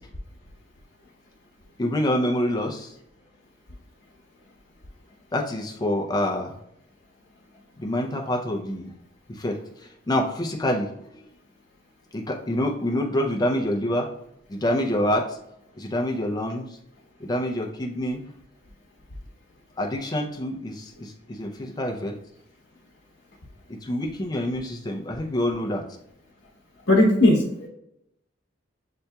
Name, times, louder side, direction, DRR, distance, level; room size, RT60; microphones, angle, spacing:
voice 1, 1.8-2.9 5.3-6.5 7.8-8.9 9.3-9.6 10.1-10.9 12.1-14.1 14.5-15.4 15.8-16.7 17.2-18.3 19.8-22.1 23.8-25.8, left 1 dB, 20° left, 0 dB, 0.5 m, -26 dB
voice 2, 26.9-27.7, left 1 dB, 65° left, -4 dB, 0.9 m, -18 dB
7.6 x 2.8 x 2.2 m, 0.81 s
head